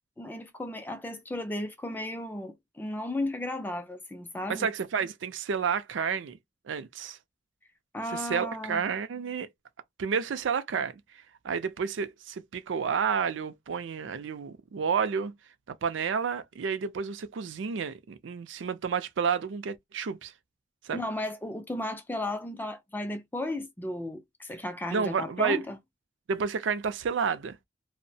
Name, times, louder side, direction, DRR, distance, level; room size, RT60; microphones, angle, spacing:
voice 1, 0.2-4.7 7.9-8.8 20.9-25.8, left 1 dB, 10° left, 0.3 m, -34 dB
voice 2, 4.5-6.4 6.7-7.2 8.1-9.5 10.0-10.9 11.4-15.3 15.7-20.3 20.8-21.0 24.9-25.6 26.3-27.6, right 6 dB, 75° right, 0.4 m, -30 dB
2.4 x 2.0 x 2.6 m
head